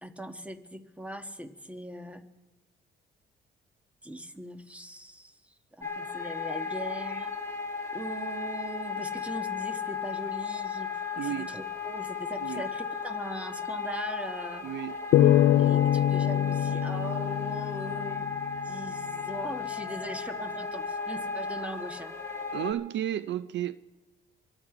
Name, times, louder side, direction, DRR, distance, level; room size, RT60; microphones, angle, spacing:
voice 1, 0.0-2.2 4.0-7.3 7.9-10.9 11.2-14.7 15.6-22.1, right 1 dB, 5° right, 1.4 m, -40 dB
sound 1, 5.8-22.7, left 5 dB, 15° left, 2.6 m, -35 dB
voice 2, 11.2-11.5 12.4-12.7 14.6-15.7 22.5-23.8, right 11 dB, 65° right, 0.5 m, -34 dB
sound 2, 15.1-18.5, left 12 dB, 65° left, 0.4 m, -24 dB
25.0 x 11.0 x 4.9 m
cardioid pair, 90°, 20 cm